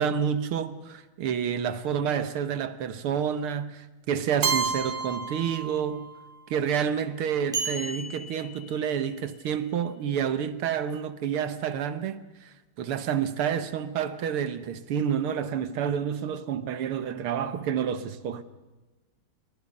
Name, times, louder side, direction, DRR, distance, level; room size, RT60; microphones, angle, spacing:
voice 1, 0.0-6.1 6.5-18.4, right 8 dB, 90° right, 2.1 m, -29 dB
Keyboard (musical), 4.4-6.4, right 5 dB, 60° right, 2.5 m, -30 dB
sound 1, 7.5-9.4, right 3 dB, ahead, 5.9 m, -35 dB
29.5 x 23.0 x 5.4 m
omnidirectional pair, 2.3 m